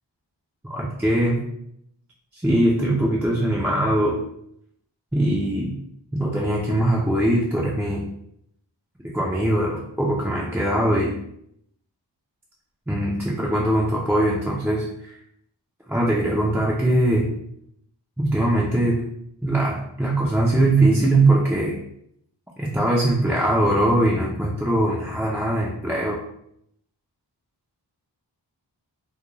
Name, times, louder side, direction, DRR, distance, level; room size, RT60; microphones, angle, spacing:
voice 1, 0.7-1.4 2.3-4.2 5.1-5.7 6.1-8.1 9.0-11.1 12.9-15.2 15.9-17.3 18.2-19.0 19.4-21.8 22.6-26.2, right 1 dB, 5° right, -4 dB, 0.4 m, -21 dB
2.4 x 2.1 x 3.0 m, 0.74 s
wide cardioid pair, 55°, 43 cm